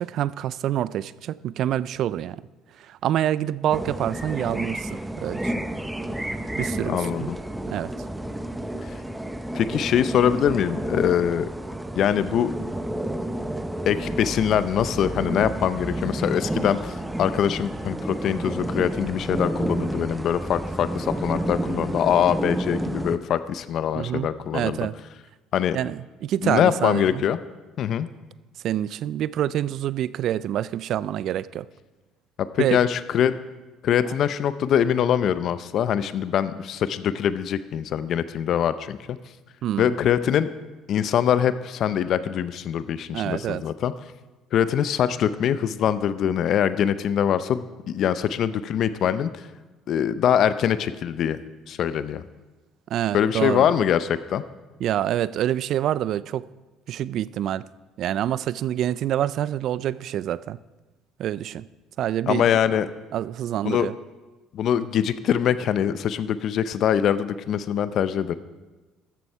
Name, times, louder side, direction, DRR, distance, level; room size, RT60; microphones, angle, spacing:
voice 1, 0.0-2.4 2.8-5.5 6.6-7.3 7.7-7.9 24.0-24.3 24.5-25.0 25.7-27.2 28.6-31.7 32.6-32.8 39.6-39.9 43.1-43.6 52.9-53.7 54.8-56.5 56.9-57.6 58.0-60.6 61.2-61.7 62.0-62.5 63.1-63.9, right 11 dB, 60° right, 19 dB, 0.3 m, -26 dB
sound 1, 3.7-23.2, right 1 dB, 5° right, 0.7 m, -30 dB
voice 2, 6.9-7.4 8.8-8.9 9.5-11.5 12.0-12.5 13.9-24.8 25.5-25.8 26.4-27.4 27.8-28.1 32.4-33.3 33.8-39.2 39.8-40.5 40.9-43.9 44.5-49.5 49.9-51.4 51.7-52.2 53.1-54.4 62.3-62.9 63.6-63.9 64.5-68.3, left 9 dB, 55° left, 14 dB, 0.5 m, -23 dB
13.0 x 7.1 x 4.6 m, 1.2 s
supercardioid pair, 95°, 0 cm